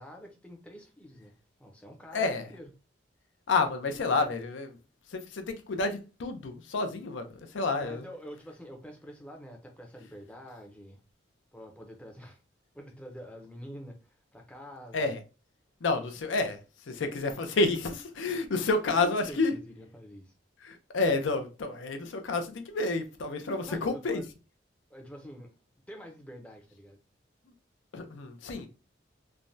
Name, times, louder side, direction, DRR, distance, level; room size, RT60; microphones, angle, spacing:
voice 1, 0.0-1.3 1.6-2.7 7.8-11.0 11.5-12.4 12.7-15.1 19.0-20.3 23.6-24.2 24.9-25.5 25.9-27.0, equal, 5° left, 0.5 m, -46 dB
voice 2, 2.1-2.5 3.5-4.8 5.1-8.0 14.9-15.2 15.8-16.6 16.9-19.5 20.6-24.2 27.9-28.7, left 3 dB, 85° left, 0.5 m, -29 dB
3.2 x 2.1 x 2.6 m
head